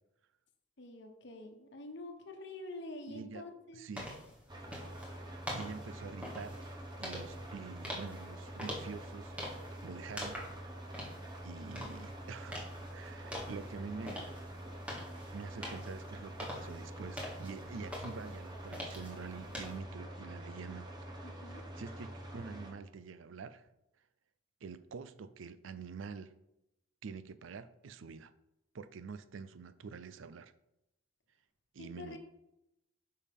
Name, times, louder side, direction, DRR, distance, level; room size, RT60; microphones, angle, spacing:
voice 1, 0.8-3.8 21.2-21.6 31.8-32.2, left 2 dB, 65° left, 1.1 m, -47 dB
voice 2, 3.1-3.5 3.7-4.1 5.2-6.6 7.0-10.4 11.4-14.2 15.3-23.7 24.6-26.3 27.0-28.3 28.7-30.5 31.7-32.2, right 5 dB, 85° right, 0.5 m, -47 dB
sound 1, 4.0-19.8, equal, 5° right, 1.5 m, -46 dB
sound 2, 4.5-22.7, right 1 dB, 20° right, 1.0 m, -46 dB
8.4 x 5.5 x 3.6 m
head